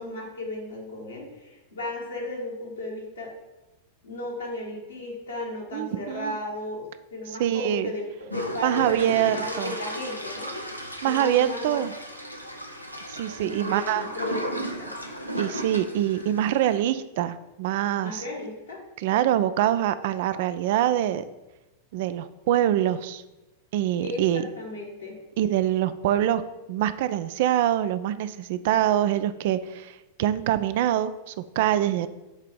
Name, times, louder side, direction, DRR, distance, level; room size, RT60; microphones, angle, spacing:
voice 1, 0.0-3.3 4.0-10.5 11.0-11.8 13.4-14.9 18.0-18.8 24.0-25.2, left 1 dB, 70° left, -1 dB, 1.7 m, -35 dB
voice 2, 5.7-6.3 7.4-7.9 8.6-9.7 11.0-11.9 13.1-14.1 15.3-18.2 19.0-21.2 21.9-23.2 23.7-24.4 25.4-26.4 26.7-32.1, right 12 dB, 50° right, 13 dB, 0.3 m, -24 dB
sound 1, 8.3-16.8, equal, 90° left, 0.6 m, -35 dB
7.9 x 2.8 x 5.1 m, 1.0 s
figure-of-eight pair, 90°, 0 cm